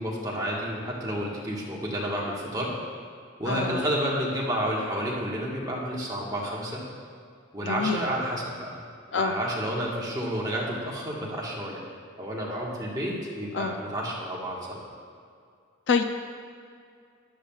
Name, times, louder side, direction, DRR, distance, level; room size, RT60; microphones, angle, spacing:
voice 1, 0.0-2.7 3.4-6.8 7.5-8.8 9.1-11.8 12.2-14.8, equal, 20° right, -4 dB, 1.4 m, -30 dB
voice 2, 3.5-3.8 7.6-8.0 9.1-9.3 13.5-13.7 15.9-16.0, left 5 dB, 60° left, 7 dB, 0.4 m, -26 dB
12.5 x 10.5 x 2.4 m, 2.3 s
head